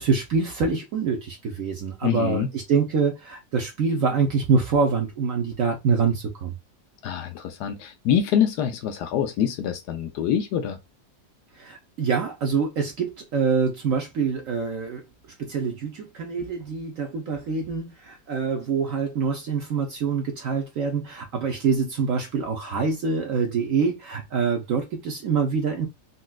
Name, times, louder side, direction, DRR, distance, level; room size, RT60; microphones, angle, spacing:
voice 1, 0.0-6.6 11.6-15.0 15.4-25.9, right 5 dB, 65° right, 0.9 m, -25 dB
voice 2, 2.0-2.5 7.0-10.8, left 9 dB, 75° left, 1.0 m, -25 dB
4.0 x 2.3 x 2.2 m
omnidirectional pair, 1.9 m